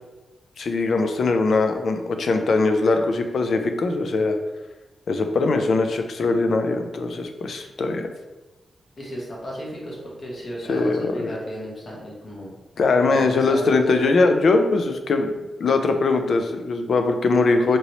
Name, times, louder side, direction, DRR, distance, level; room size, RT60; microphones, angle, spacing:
voice 1, 0.6-4.4 5.1-8.1 10.7-11.3 12.8-15.3 15.6-17.8, left 3 dB, 60° left, 6 dB, 0.3 m, -21 dB
voice 2, 9.0-12.6 13.1-13.7, equal, 40° left, -4 dB, 0.9 m, -35 dB
2.9 x 2.9 x 2.7 m, 1.1 s
wide cardioid pair, 170°, 0 cm